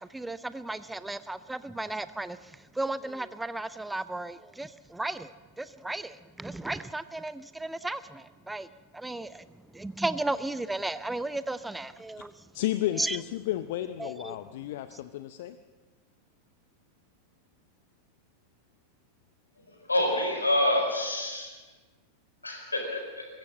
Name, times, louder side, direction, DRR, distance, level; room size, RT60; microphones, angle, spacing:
voice 1, 0.0-8.7 8.9-9.5 9.7-12.5 12.9-13.2 14.0-14.4 14.9-15.0, right 2 dB, 5° right, 15 dB, 0.6 m, -35 dB
voice 2, 12.5-15.6, left 14 dB, 55° left, 12 dB, 0.7 m, -32 dB
voice 3, 19.9-21.5 22.4-23.2, left 1 dB, 80° left, 2 dB, 4.7 m, -27 dB
22.5 x 15.5 x 7.6 m, 1.3 s
figure-of-eight pair, 90°, 0 cm